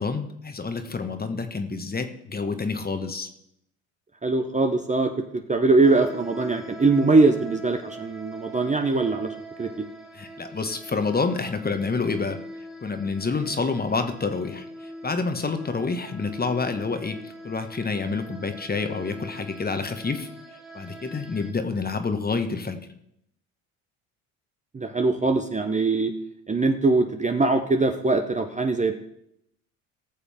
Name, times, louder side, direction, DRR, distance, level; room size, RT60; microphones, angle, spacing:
voice 1, 0.0-3.3 10.1-12.4 12.8-20.3 20.7-22.8, left 4 dB, 20° left, 8 dB, 1.3 m, -28 dB
voice 2, 4.2-9.3 9.6-9.9 24.7-26.1 26.5-28.9, right 3 dB, 15° right, 5 dB, 0.9 m, -22 dB
sound 1, 5.8-21.5, right 1 dB, ahead, 1.3 m, -42 dB
19.0 x 6.9 x 3.6 m, 0.76 s
hypercardioid pair, 65°, 41 cm